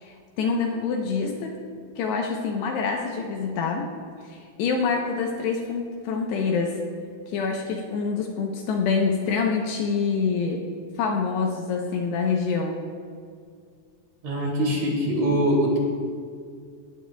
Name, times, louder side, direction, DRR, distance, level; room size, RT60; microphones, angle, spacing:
voice 1, 0.0-1.6 2.0-3.9 4.2-6.8 7.3-10.7 11.0-12.8, left 5 dB, 75° left, 1 dB, 2.8 m, -26 dB
voice 2, 14.2-15.8, equal, 45° right, -3 dB, 3.2 m, -23 dB
18.5 x 17.5 x 2.3 m, 2.1 s
omnidirectional pair, 5.4 m